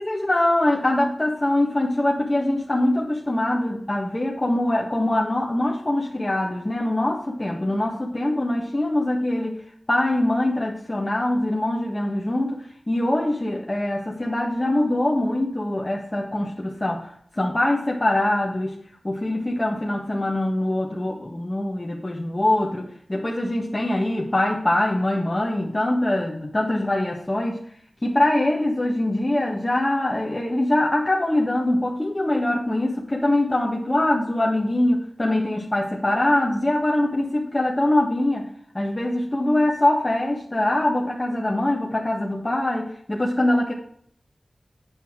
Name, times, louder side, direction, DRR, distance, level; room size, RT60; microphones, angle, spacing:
voice 1, 0.0-9.6 9.9-18.8 19.0-27.6 28.0-38.5 38.7-43.7, left 1 dB, 30° left, -2 dB, 1.6 m, -23 dB
8.7 x 5.5 x 6.2 m, 0.63 s
cardioid pair, 45°, 0 cm